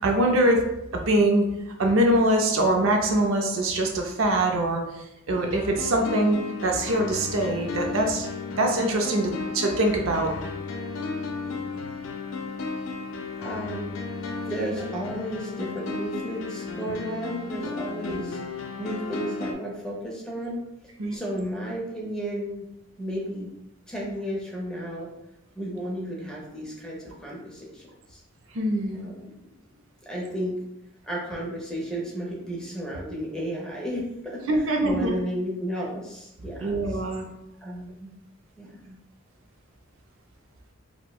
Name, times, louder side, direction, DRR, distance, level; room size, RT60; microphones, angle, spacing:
voice 1, 0.0-0.6 0.9-1.5 1.8-4.8 5.3-8.3 8.6-10.3 21.0-21.2 28.5-29.0 34.5-35.1 36.6-37.2, right 1 dB, 60° right, 2 dB, 0.5 m, -23 dB
sound 1, 5.3-19.5, left 4 dB, 60° left, 0.4 m, -34 dB
voice 2, 9.0-9.3 11.5-11.8 13.4-14.0 14.3-18.4 18.8-20.6 21.1-22.6 23.0-23.5 23.9-25.1 25.6-28.2 28.9-29.3 30.1-30.6 31.0-37.0 37.6-38.1 38.6-39.0, equal, 5° left, -4 dB, 0.6 m, -33 dB
4.3 x 2.1 x 2.3 m, 0.87 s
head